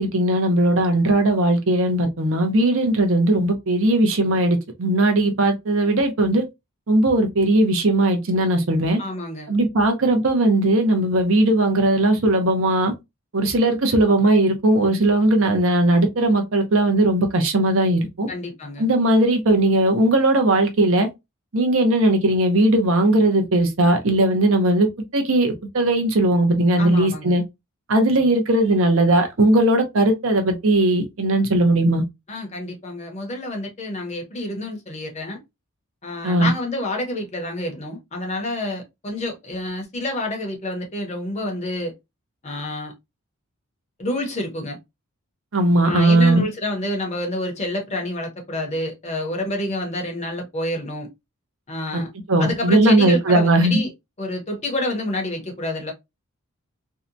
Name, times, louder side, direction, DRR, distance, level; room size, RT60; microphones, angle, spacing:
voice 1, 0.0-6.4 6.9-9.0 9.5-12.9 13.3-18.3 18.8-21.1 21.5-24.9 25.1-27.4 27.9-32.0 36.2-36.5 45.5-46.4 51.9-52.0 52.3-53.8, right 1 dB, 65° right, 0.6 m, -18 dB
voice 2, 9.0-9.5 18.3-18.9 26.8-27.4 32.3-35.4 36.0-41.9 42.4-42.9 44.0-44.8 45.8-51.1 51.7-52.1 52.4-53.9 54.2-55.9, left 1 dB, 30° left, 0.7 m, -28 dB
2.7 x 2.1 x 2.5 m
head